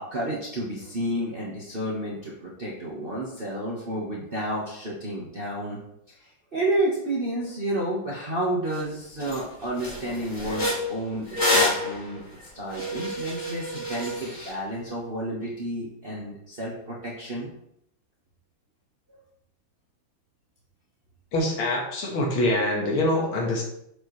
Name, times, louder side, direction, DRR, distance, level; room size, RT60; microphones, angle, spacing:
voice 1, 0.0-5.8 6.1-17.5 19.1-19.2, right 1 dB, 30° right, -6 dB, 1.4 m, -31 dB
sound 1, 8.7-8.8 9.2-9.4 9.8-14.5, left 1 dB, 35° left, 2.5 m, -28 dB
voice 2, 21.3-23.6, left 1 dB, 80° left, -1 dB, 2.4 m, -24 dB
7.4 x 6.9 x 3.2 m, 0.74 s
omnidirectional pair, 2.3 m